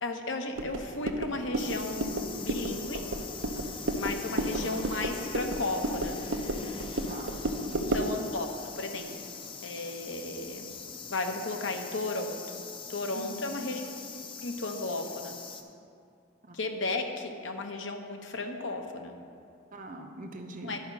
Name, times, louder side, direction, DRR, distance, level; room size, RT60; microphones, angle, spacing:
voice 1, 0.0-2.1 2.4-3.0 3.9-6.2 7.7-9.2 9.6-10.7 11.1-12.6 12.9-14.1 14.4-15.4 16.5-19.2 20.6-20.8, left 2 dB, 70° left, 4 dB, 0.9 m, -34 dB
sound 1, 0.6-8.2, right 1 dB, 75° right, 0.7 m, -33 dB
sound 2, 1.6-15.6, left 5 dB, 25° left, 0.5 m, -42 dB
voice 2, 6.8-7.3 7.6-8.1 13.1-13.4 16.5-16.6 19.7-20.8, right 1 dB, 40° right, 4 dB, 0.7 m, -43 dB
11.5 x 5.1 x 6.0 m, 2.4 s
head